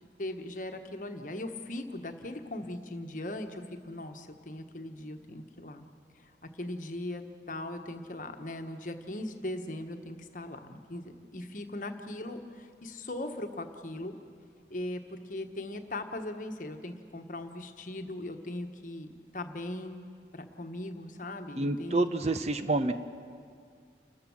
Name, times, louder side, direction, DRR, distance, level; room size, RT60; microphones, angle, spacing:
voice 1, 0.0-5.8 6.2-14.2 14.7-20.1 20.3-22.0, left 1 dB, 45° left, 6 dB, 1.3 m, -39 dB
voice 2, 21.6-22.9, right 2 dB, 35° right, 10 dB, 0.7 m, -28 dB
29.5 x 13.5 x 7.2 m, 2.2 s
head